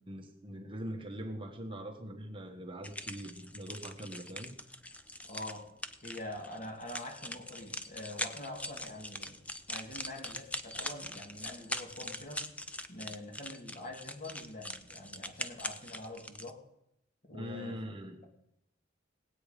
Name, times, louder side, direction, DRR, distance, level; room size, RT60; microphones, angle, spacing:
voice 1, 0.1-4.6 17.3-18.2, equal, 25° right, 3 dB, 1.4 m, -42 dB
sound 1, 2.8-16.5, left 1 dB, 5° left, 0.6 m, -42 dB
voice 2, 5.3-5.7 6.0-9.4 9.7-12.4 12.9-16.6 17.2-17.8, left 1 dB, 40° left, 2 dB, 2.5 m, -45 dB
18.5 x 8.6 x 5.1 m, 0.81 s
head